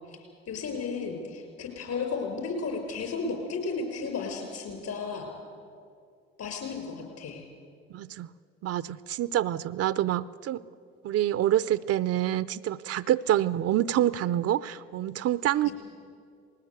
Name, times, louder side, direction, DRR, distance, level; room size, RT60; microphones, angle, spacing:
voice 1, 0.5-5.3 6.4-7.4 15.6-15.7, left 4 dB, 55° left, 3 dB, 6.0 m, -34 dB
voice 2, 7.9-8.3 8.6-10.6 11.0-15.7, right 12 dB, 50° right, 17 dB, 0.6 m, -27 dB
20.0 x 19.0 x 8.1 m, 2.4 s
hypercardioid pair, 55°, 31 cm